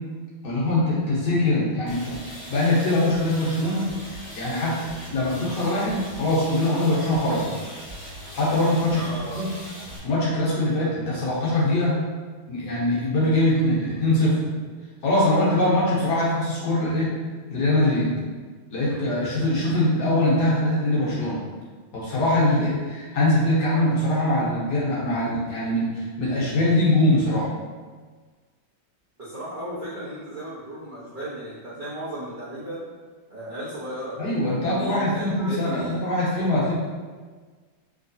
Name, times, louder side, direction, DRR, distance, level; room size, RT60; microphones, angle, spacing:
voice 1, 0.4-2.1 2.5-7.5 8.3-9.0 9.4-9.5 10.0-12.0 12.5-14.3 15.0-17.1 17.5-18.1 18.7-21.4 21.9-27.5 34.2-36.7, left 1 dB, 60° left, -7 dB, 1.5 m, -22 dB
sound 1, 1.9-10.0, equal, 35° left, 0.6 m, -40 dB
voice 2, 8.9-9.5 29.2-32.8 33.3-34.2 34.5-36.1, right 1 dB, 80° right, -11 dB, 0.4 m, -35 dB
3.4 x 3.1 x 2.6 m, 1.5 s
omnidirectional pair, 2.3 m